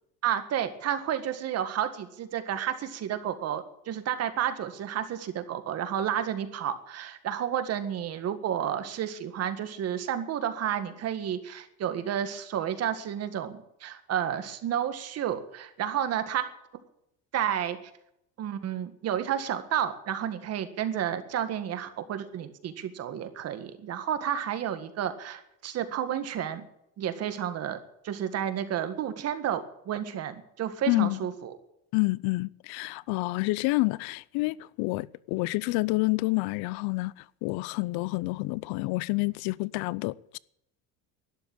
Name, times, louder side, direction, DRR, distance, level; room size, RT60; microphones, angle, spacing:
voice 1, 0.2-16.4 17.3-17.8 18.4-26.6 27.0-27.8 28.0-31.5, right 10 dB, 45° right, 1.8 m, -31 dB
voice 2, 30.9-31.2 31.9-40.4, left 23 dB, 85° left, 0.7 m, -28 dB
12.5 x 11.5 x 8.9 m
cardioid pair, 170°, 36 cm